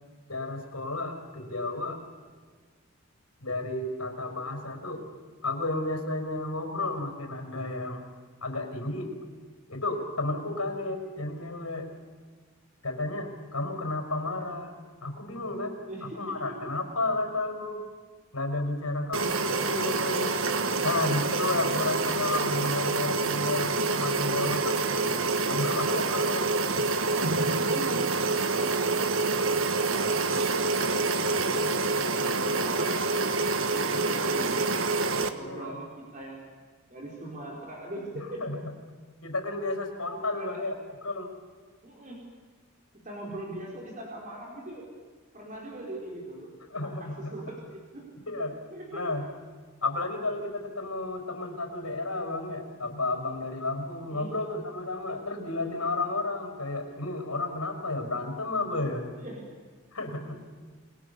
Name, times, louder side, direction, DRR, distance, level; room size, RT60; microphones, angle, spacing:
voice 1, 0.3-2.0 3.4-5.0 5.4-8.0 8.4-9.1 9.7-11.9 12.8-15.8 16.1-17.8 18.3-20.5 20.8-24.8 25.4-26.5 35.3-35.8 38.4-38.6 39.2-40.7 41.0-41.3 46.7-47.3 48.2-48.5 48.9-49.2 49.8-59.1 59.9-60.4, left 2 dB, 90° left, 4 dB, 5.2 m, -32 dB
voice 2, 15.8-16.6 27.7-28.1 29.6-33.0 33.4-34.6 35.1-36.5 36.9-38.4 40.3-40.7 41.8-42.2 42.9-44.8 45.3-48.0 48.7-49.1 54.1-54.4 55.4-55.7 59.2-59.6 60.3-60.4, right 1 dB, 35° right, -2 dB, 4.8 m, -41 dB
sound 1, 19.1-35.3, right 3 dB, 65° right, 1.5 m, -27 dB
29.0 x 21.0 x 7.0 m, 1.5 s
head